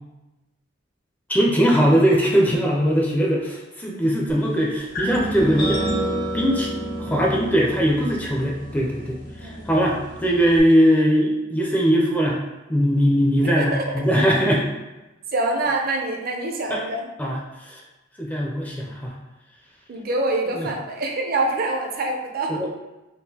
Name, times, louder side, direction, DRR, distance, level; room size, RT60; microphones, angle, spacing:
voice 1, 1.3-5.8 6.3-6.7 7.0-12.4 12.7-14.7 16.7-16.8 17.2-17.4 17.7-17.8 18.2-19.1 20.5-20.7 22.5-22.7, equal, 10° left, -2 dB, 0.4 m, -20 dB
sound 1, 4.9-10.6, right 1 dB, 75° left, 1.3 m, -29 dB
voice 2, 13.4-13.8 15.3-17.1 19.9-22.7, right 2 dB, 50° right, 1 dB, 0.5 m, -25 dB
3.7 x 2.4 x 2.7 m, 1.0 s
head